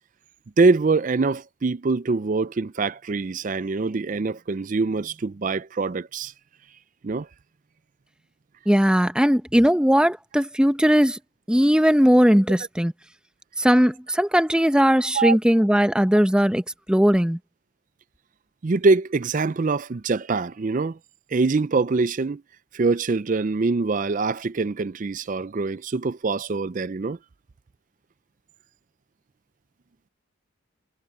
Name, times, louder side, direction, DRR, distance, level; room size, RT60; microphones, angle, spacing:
voice 1, 0.6-6.3 7.0-7.3 15.1-15.4 18.6-21.0 21.3-22.4 22.7-27.2, right 3 dB, 40° right, 0.4 m, -24 dB
voice 2, 8.7-11.2 11.5-12.9 13.6-16.6 16.9-17.4, equal, 5° right, 0.7 m, -18 dB
head